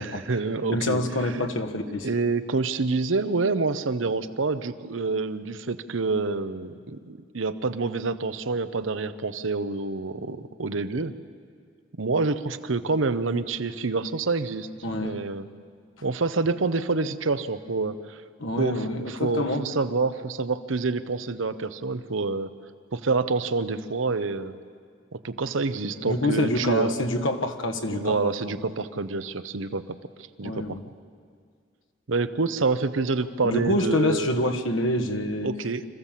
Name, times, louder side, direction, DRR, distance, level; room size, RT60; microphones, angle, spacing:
voice 1, 0.0-1.0 1.9-11.2 12.0-14.7 15.0-15.5 16.0-18.2 18.6-22.5 22.9-24.5 25.1-26.9 27.9-29.8 30.4-30.8 32.1-34.4 35.4-35.9, right 3 dB, 85° right, 12 dB, 0.8 m, -27 dB
voice 2, 0.7-2.1 14.8-15.2 18.4-19.7 26.0-28.1 28.4-28.6 30.4-30.8 33.4-35.5, left 1 dB, 85° left, 5 dB, 1.4 m, -26 dB
26.0 x 15.0 x 7.5 m, 2.1 s
head